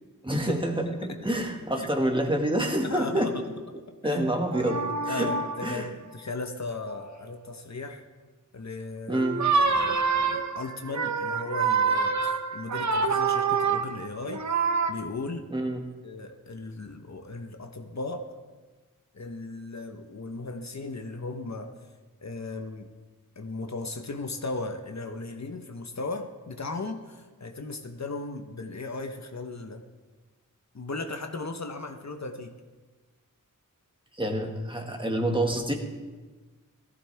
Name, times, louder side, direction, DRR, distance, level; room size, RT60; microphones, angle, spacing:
voice 1, 0.2-3.4 4.0-5.9 9.1-9.5 15.5-15.9 34.1-35.7, right 1 dB, 15° right, 1 dB, 1.8 m, -28 dB
voice 2, 2.8-3.3 4.0-4.2 5.1-8.0 8.5-9.2 9.7-14.5 14.9-15.4 16.0-18.3 19.1-21.7 22.2-22.9 23.4-29.8 30.7-32.5, left 3 dB, 55° left, 5 dB, 1.1 m, -36 dB
sound 1, 4.5-5.8 6.9-7.2 9.1-14.9, right 5 dB, 60° right, 0.9 m, -26 dB
17.5 x 14.0 x 3.5 m, 1.3 s
wide cardioid pair, 65°, 33 cm